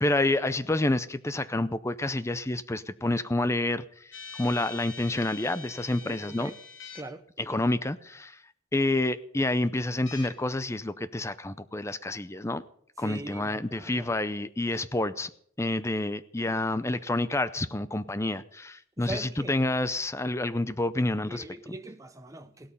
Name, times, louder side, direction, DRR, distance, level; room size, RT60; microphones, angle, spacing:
voice 1, 0.0-3.8 4.4-6.5 7.4-8.4 8.7-12.6 13.0-15.3 15.6-21.4, left 2 dB, 15° left, 0.5 m, -28 dB
sound 1, 4.1-7.0 10.1-10.3, left 5 dB, 65° left, 2.7 m, -44 dB
voice 2, 6.1-6.5 6.9-7.2 13.0-14.1 19.0-19.5 21.3-22.7, right 1 dB, 15° right, 0.9 m, -41 dB
17.0 x 12.5 x 5.4 m
head